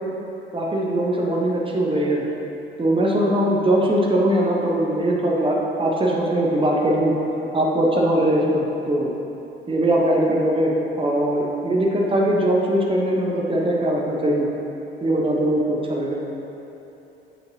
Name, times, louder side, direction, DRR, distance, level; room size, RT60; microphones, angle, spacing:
voice 1, 0.5-2.2 2.8-7.1 7.5-9.1 9.7-14.5 15.0-16.2, right 1 dB, 15° right, -2 dB, 1.0 m, -21 dB
7.6 x 5.1 x 2.9 m, 2.9 s
figure-of-eight pair, 50°, 30 cm